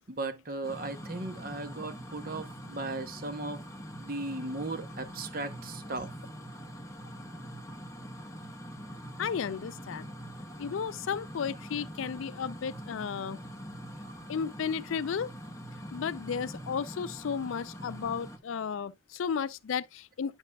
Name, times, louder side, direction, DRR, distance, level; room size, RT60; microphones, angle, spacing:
voice 1, 0.0-3.7 4.0-6.1 14.1-14.3, right 2 dB, 45° right, 0.8 m, -37 dB
sound 1, 0.6-18.4, equal, 15° left, 1.0 m, -44 dB
voice 2, 9.2-10.1 10.6-13.4 14.3-15.3 15.9-20.4, left 6 dB, 70° left, 0.4 m, -34 dB
10.5 x 5.5 x 2.2 m
head